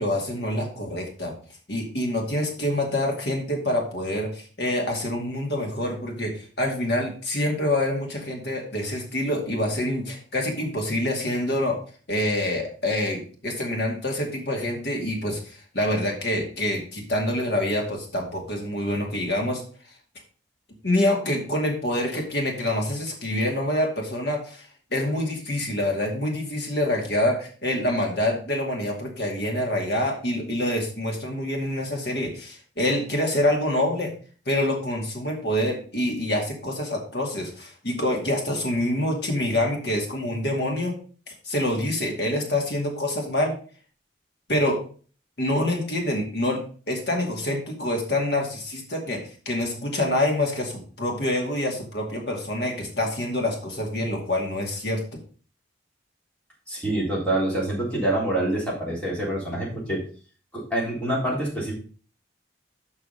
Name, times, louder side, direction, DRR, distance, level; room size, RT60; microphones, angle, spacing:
voice 1, 0.0-1.3 1.7-6.3 6.6-11.8 12.1-19.6 20.8-34.1 34.5-40.9 41.4-43.5 44.5-44.8 45.4-49.2 49.5-55.0, left 1 dB, 60° left, 0 dB, 2.3 m, -26 dB
voice 2, 56.7-60.0 60.5-61.7, right 1 dB, 5° left, -6 dB, 3.5 m, -26 dB
6.8 x 5.6 x 5.6 m, 0.41 s
head